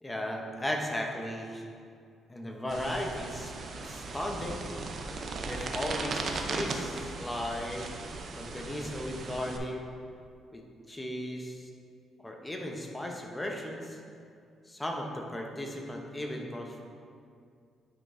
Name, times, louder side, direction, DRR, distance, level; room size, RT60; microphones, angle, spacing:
voice 1, 0.0-1.7 2.3-4.7 5.4-7.9 8.3-9.8 10.5-11.7 12.2-14.0 14.7-16.8, left 1 dB, 15° left, 1 dB, 0.9 m, -36 dB
sound 1, 2.7-9.6, right 3 dB, 55° right, 0.7 m, -37 dB
9.4 x 5.3 x 2.7 m, 2.3 s
cardioid pair, 90°, 0 cm